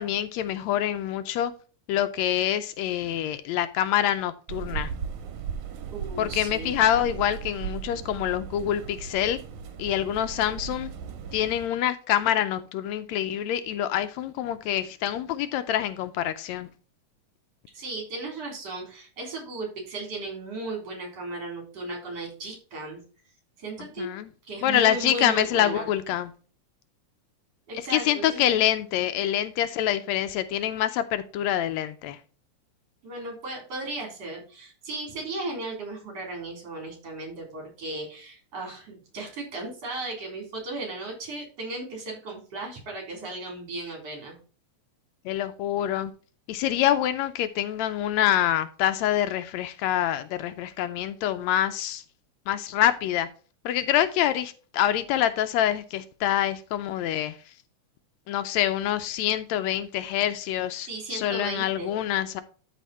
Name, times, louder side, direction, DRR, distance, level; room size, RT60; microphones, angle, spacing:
voice 1, 0.0-1.5 1.9-4.9 6.2-9.4 9.8-10.9 11.3-16.7 24.0-24.3 24.6-26.3 27.7-32.2 45.2-46.1 46.5-52.0 52.5-53.3 53.6-57.4 58.3-62.4, left 11 dB, 80° left, 11 dB, 1.8 m, -26 dB
sound 1, 4.5-11.7, right 7 dB, 85° right, 2.5 m, -37 dB
voice 2, 5.9-6.8 17.7-23.0 23.6-24.1 24.5-25.9 27.7-28.4 33.0-44.4 60.9-61.9, right 2 dB, 60° right, 1 dB, 4.6 m, -36 dB
12.5 x 4.3 x 4.2 m, 0.38 s
omnidirectional pair, 3.3 m